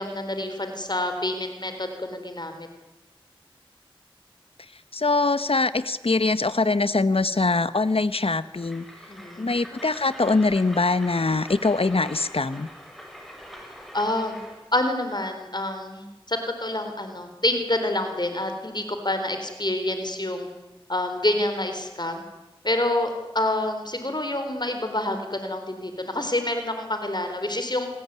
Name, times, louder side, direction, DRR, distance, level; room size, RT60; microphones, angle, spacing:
voice 1, 0.0-2.7 9.1-9.5 13.9-14.4 14.7-20.5 20.9-22.2 22.6-27.9, left 1 dB, 50° left, 6 dB, 4.1 m, -27 dB
voice 2, 4.9-8.8 9.4-12.7, left 3 dB, 90° left, 14 dB, 1.1 m, -23 dB
Train, 8.6-14.6, equal, ahead, 6.3 m, -43 dB
28.0 x 19.0 x 9.7 m, 1.1 s
wide cardioid pair, 40°, 9 cm